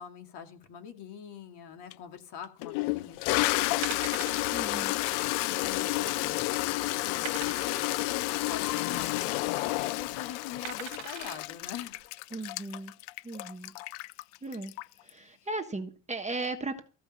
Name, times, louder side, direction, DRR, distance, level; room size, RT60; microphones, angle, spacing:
voice 1, 0.0-4.1 5.5-12.0, left 8 dB, 55° left, 6 dB, 2.4 m, -44 dB
Toilet flush, 1.9-2.0 2.6-15.1, left 20 dB, 85° left, 0.6 m, -31 dB
sound 1, 3.2-3.3 3.8-4.5 4.9-5.1 5.3-5.4 6.0-6.5 7.2-7.9 9.3-9.6 10.6-11.4 12.0-12.1, right 16 dB, 65° right, 1.1 m, -41 dB
voice 2, 4.5-5.0 12.3-12.9 13.2-13.7 14.4-14.7 15.0-16.8, right 2 dB, 15° right, 5 dB, 1.2 m, -36 dB
15.0 x 5.3 x 8.3 m, 0.37 s
cardioid pair, 130°, 49 cm